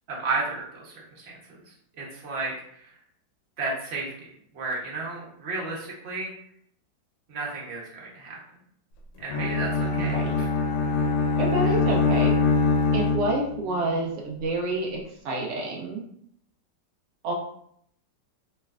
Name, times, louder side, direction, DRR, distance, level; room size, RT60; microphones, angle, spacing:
voice 1, 0.1-2.9 3.6-4.3 4.5-6.3 7.3-8.4 9.2-10.5 11.7-11.8, right 3 dB, 50° right, -3 dB, 0.8 m, -33 dB
Bowed string instrument, 9.3-13.7, left 4 dB, 90° left, 1.3 m, -23 dB
voice 2, 9.9-10.4 11.4-12.3 12.9-15.0 15.2-16.0 17.2-17.3, right 2 dB, 85° right, -2 dB, 0.6 m, -28 dB
3.2 x 3.2 x 2.3 m, 0.69 s
omnidirectional pair, 2.0 m